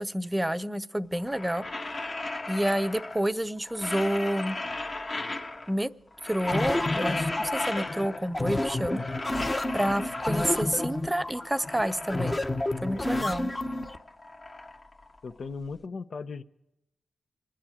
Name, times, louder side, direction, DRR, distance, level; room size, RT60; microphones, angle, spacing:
voice 1, 0.0-1.6 2.5-4.6 5.7-5.9 6.2-9.0 9.7-12.4 12.8-13.5, equal, 10° right, 12 dB, 0.6 m, -29 dB
sound 1, 1.2-3.3 3.6-5.8 6.1-8.4 8.6-10.7 11.2-13.2 13.5-15.7, left 2 dB, 40° left, 1.6 m, -36 dB
sound 2, 6.5-14.0, left 2 dB, 20° left, 0.9 m, -30 dB
voice 2, 13.0-13.4 15.2-16.4, left 4 dB, 60° left, 12 dB, 0.7 m, -38 dB
26.5 x 10.0 x 4.9 m, 0.86 s
cardioid pair, 95°, 0 cm